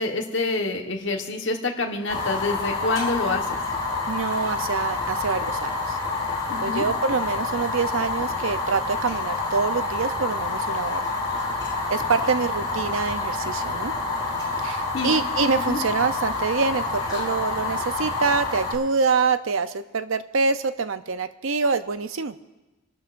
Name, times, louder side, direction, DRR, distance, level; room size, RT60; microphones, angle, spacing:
voice 1, 0.0-3.6 6.5-6.8 14.9-15.2 15.6-15.8, left 3 dB, 65° left, 2 dB, 1.4 m, -27 dB
Fire, 2.1-18.7, left 3 dB, 20° left, 5.5 m, -28 dB
voice 2, 4.1-6.0 6.6-11.0 11.9-13.9 14.6-22.4, right 4 dB, 85° right, 11 dB, 0.7 m, -25 dB
27.5 x 12.0 x 2.6 m, 1.1 s
head